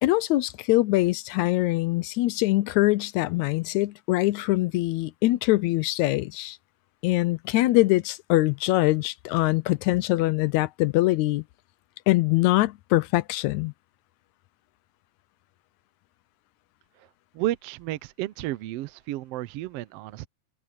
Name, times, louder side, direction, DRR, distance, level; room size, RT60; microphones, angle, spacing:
voice 1, 0.0-6.6 7.0-11.4 12.1-13.7, left 18 dB, 80° left, 1.9 m, -23 dB
voice 2, 17.3-20.3, right 16 dB, 75° right, 1.4 m, -32 dB
omnidirectional pair, 3.4 m